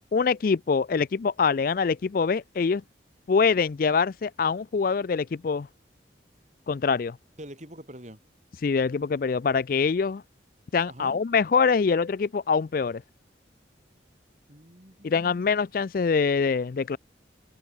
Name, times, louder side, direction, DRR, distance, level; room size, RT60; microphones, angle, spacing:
voice 1, 0.1-2.8 3.3-5.7 6.7-7.2 8.6-10.2 10.7-13.0 15.0-17.0, left 5 dB, 50° left, 0.4 m, -24 dB
voice 2, 7.4-8.2 10.9-11.2 14.5-15.5, right 1 dB, 40° right, 5.7 m, -45 dB
head